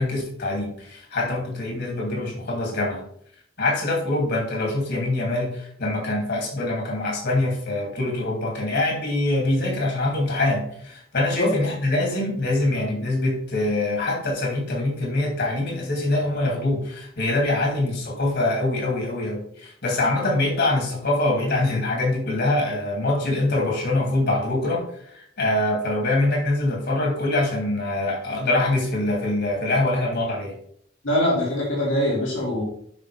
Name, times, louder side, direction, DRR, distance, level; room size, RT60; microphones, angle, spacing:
voice 1, 0.0-3.1 3.6-30.6, left 2 dB, 60° left, 1 dB, 2.9 m, -24 dB
voice 2, 31.0-32.6, left 1 dB, 75° left, -5 dB, 3.2 m, -23 dB
10.5 x 5.8 x 3.5 m, 0.66 s
head